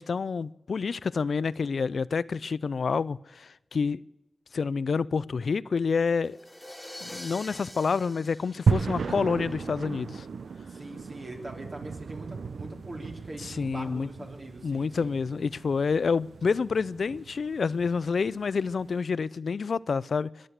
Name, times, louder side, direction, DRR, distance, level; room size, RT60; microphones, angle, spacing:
voice 1, 0.0-4.0 4.5-6.4 7.0-10.3 13.4-14.1 14.6-20.3, left 5 dB, 80° left, 0.4 m, -28 dB
sound 1, 6.2-9.5, left 1 dB, 10° left, 0.8 m, -45 dB
sound 2, 8.7-18.9, right 5 dB, 85° right, 0.5 m, -35 dB
voice 2, 10.7-15.2, right 1 dB, 50° right, 3.5 m, -42 dB
22.0 x 7.6 x 8.1 m
wide cardioid pair, 65°, 0 cm